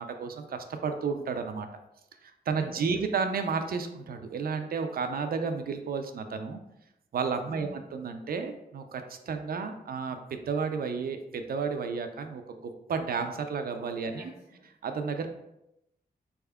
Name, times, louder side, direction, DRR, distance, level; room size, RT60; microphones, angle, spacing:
voice 1, 0.0-1.7 2.2-6.6 7.1-14.3 14.8-15.3, right 5 dB, 60° right, 7 dB, 0.4 m, -32 dB
voice 2, 2.5-3.1 7.5-7.8 14.1-14.7, left 1 dB, 70° left, -4 dB, 1.3 m, -49 dB
4.2 x 3.4 x 2.2 m, 0.86 s
wide cardioid pair, 130°, 17 cm